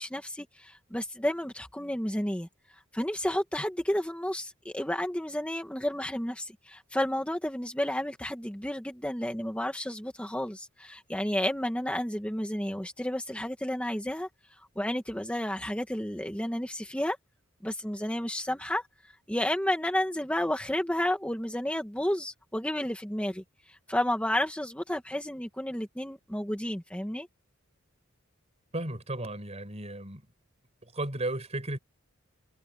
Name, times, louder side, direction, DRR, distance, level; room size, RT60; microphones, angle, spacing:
voice 1, 0.0-2.5 2.9-17.2 17.6-18.8 19.3-27.3, left 1 dB, 5° left, 1.5 m, -31 dB
voice 2, 28.7-30.2 30.9-31.8, right 2 dB, 35° right, 5.2 m, -34 dB
head